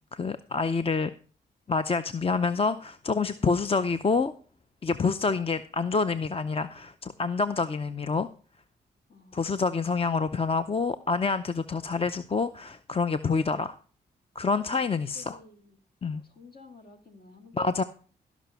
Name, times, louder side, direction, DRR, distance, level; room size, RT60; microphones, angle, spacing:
voice 1, 0.1-1.1 1.7-4.3 4.8-8.3 9.3-13.8 14.4-15.4 16.0-16.2 17.6-17.8, left 4 dB, 30° left, 0.6 m, -27 dB
voice 2, 9.1-9.4 14.4-14.8 15.1-17.8, left 3 dB, 55° left, 2.2 m, -53 dB
13.5 x 6.1 x 5.6 m
cardioid pair, 60°, 19 cm